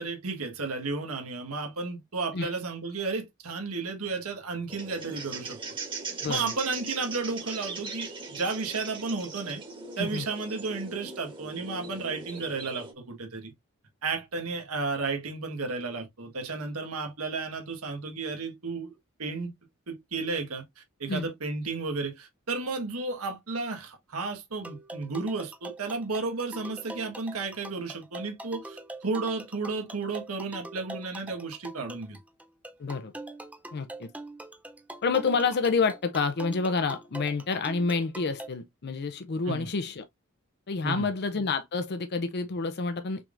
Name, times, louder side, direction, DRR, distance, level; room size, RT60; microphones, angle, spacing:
voice 1, 0.0-5.6 6.3-9.6 10.0-13.5 14.0-18.9 19.2-19.5 19.9-32.2 39.5-39.7 40.8-41.1, right 4 dB, 85° right, 1.4 m, -33 dB
sound 1, 4.7-12.9, right 4 dB, 25° right, 1.4 m, -39 dB
voice 2, 6.2-6.5 10.0-10.3 21.1-21.3 32.8-33.1 33.7-34.1 35.0-40.0 40.7-43.3, left 4 dB, 50° left, 0.6 m, -28 dB
sound 2, 24.6-38.5, right 2 dB, 5° right, 0.6 m, -43 dB
5.9 x 3.5 x 2.5 m
head